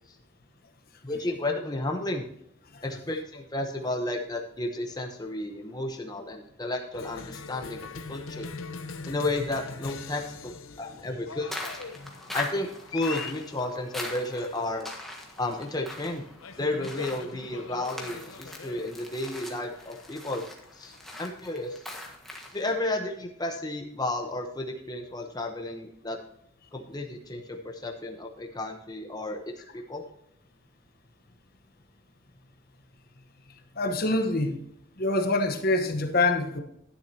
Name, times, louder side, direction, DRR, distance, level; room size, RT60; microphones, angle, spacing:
voice 1, 1.0-2.3 2.8-8.5 9.1-11.5 12.3-14.9 15.4-16.2 16.6-20.4 20.7-21.9 22.5-26.2 26.7-29.4 29.7-30.0, left 2 dB, 20° left, 2 dB, 0.9 m, -32 dB
Cheering, 6.9-22.1, left 5 dB, 85° left, 0.9 m, -43 dB
sound 1, 11.5-22.7, left 1 dB, ahead, 1.5 m, -41 dB
voice 2, 33.7-34.6 35.0-36.6, left 2 dB, 45° left, 6 dB, 1.1 m, -25 dB
12.0 x 10.0 x 2.9 m, 0.74 s
head